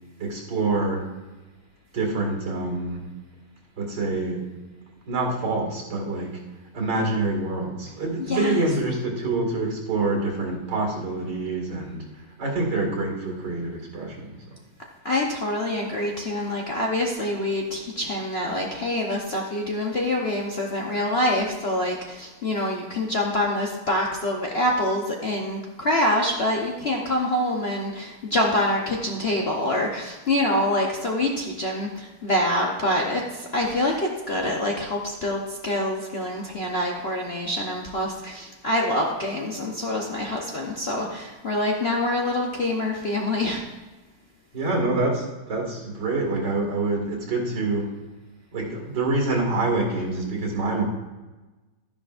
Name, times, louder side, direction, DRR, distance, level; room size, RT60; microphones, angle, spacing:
voice 1, 0.2-1.1 1.9-3.1 3.8-4.5 5.1-6.4 6.7-12.0 12.4-14.3 44.5-47.9 48.5-50.8, right 2 dB, 70° right, 0 dB, 2.8 m, -26 dB
voice 2, 8.3-8.6 15.0-43.6, left 1 dB, 45° left, -1 dB, 0.9 m, -26 dB
12.5 x 10.5 x 2.5 m, 1.2 s
omnidirectional pair, 2.0 m